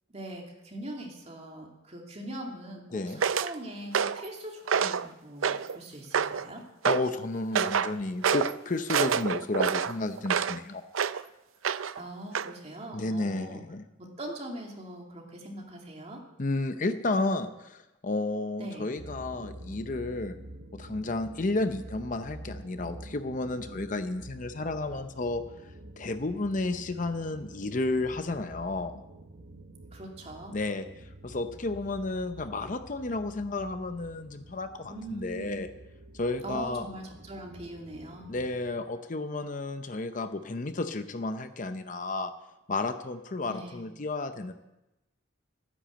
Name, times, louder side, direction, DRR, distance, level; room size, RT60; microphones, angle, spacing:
voice 1, 0.1-6.6 12.0-13.6 14.0-16.2 18.6-18.9 29.9-30.6 34.9-35.7 36.4-38.3 43.4-43.8, right 1 dB, 30° right, 0 dB, 2.6 m, -41 dB
sound 1, 3.2-3.5 3.9-4.3 4.7-5.1 5.4-5.8 6.1-6.5 6.9-7.1 7.6-7.9 8.2-8.5 8.9-10.6 10.9-11.2 11.6-12.0 12.4-12.5, right 7 dB, 90° right, 0.5 m, -27 dB
voice 2, 6.8-10.8 12.9-13.8 16.4-20.3 20.7-29.0 30.5-35.7 36.1-36.8 38.3-42.3 42.7-44.5, left 2 dB, 40° left, 9 dB, 0.7 m, -32 dB
sound 2, 19.0-38.8, right 1 dB, 55° right, 1.1 m, -48 dB
13.5 x 10.0 x 7.6 m, 0.95 s
head